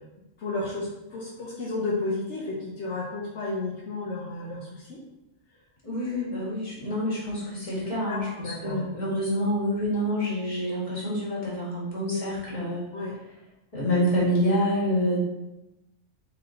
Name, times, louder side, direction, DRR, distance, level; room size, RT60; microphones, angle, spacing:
voice 1, 0.4-5.0 6.0-6.2 7.8-8.8 12.1-12.2 12.9-13.1, left 2 dB, 70° left, -5 dB, 1.0 m, -32 dB
voice 2, 5.8-12.8 13.7-15.2, equal, 30° left, -7 dB, 1.8 m, -27 dB
4.0 x 3.3 x 3.8 m, 0.95 s
omnidirectional pair, 1.3 m